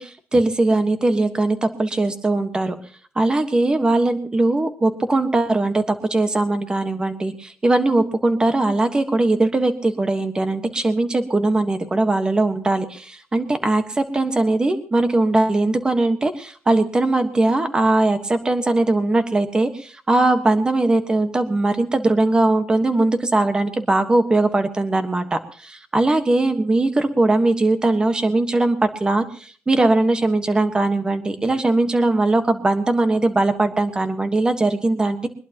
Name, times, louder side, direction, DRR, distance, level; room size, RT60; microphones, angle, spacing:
voice 1, 0.0-2.7 3.1-35.3, right 2 dB, 20° right, 8 dB, 1.4 m, -20 dB
22.0 x 21.0 x 3.0 m, 0.44 s
wide cardioid pair, 170°, 4 cm